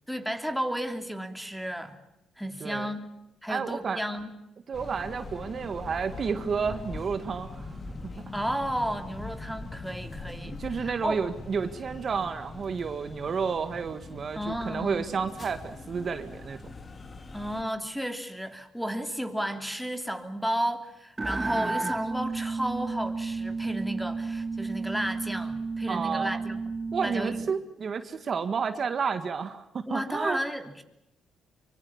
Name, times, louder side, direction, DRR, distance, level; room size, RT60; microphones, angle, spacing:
voice 1, 0.1-2.0 2.4-3.0 3.4-4.3 8.3-11.2 14.3-15.0 17.3-26.7 27.0-27.4 29.9-30.8, equal, ahead, 8 dB, 3.0 m, -33 dB
voice 2, 2.6-2.9 3.5-4.0 4.7-7.8 8.2-8.3 10.6-16.7 25.9-26.4 26.9-30.4, right 5 dB, 45° right, 9 dB, 1.8 m, -31 dB
sound 1, 4.7-17.6, left 2 dB, 35° left, 2.7 m, -42 dB
sound 2, 21.2-27.5, right 3 dB, 20° right, 1.0 m, -32 dB
25.0 x 24.5 x 7.2 m, 0.85 s
cardioid pair, 90°, 0 cm